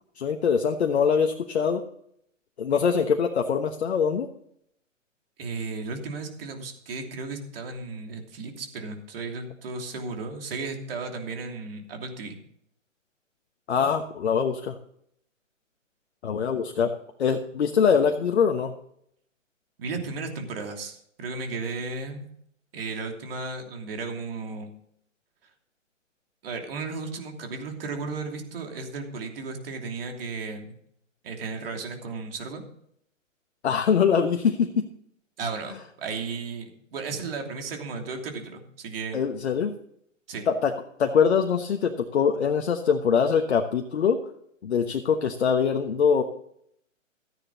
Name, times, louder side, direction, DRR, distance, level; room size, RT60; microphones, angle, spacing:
voice 1, 0.2-1.8 2.6-4.3 13.7-14.8 16.2-18.7 33.6-34.9 39.1-39.8 40.5-40.7 41.0-44.2 44.6-46.2, left 6 dB, 55° left, 5 dB, 1.3 m, -23 dB
voice 2, 5.4-12.4 19.8-22.2 22.7-24.7 26.4-30.7 31.2-32.6 35.4-39.2 40.3-40.5, right 4 dB, 45° right, 3 dB, 3.0 m, -34 dB
14.0 x 10.0 x 4.0 m, 0.69 s
figure-of-eight pair, 130°, 39 cm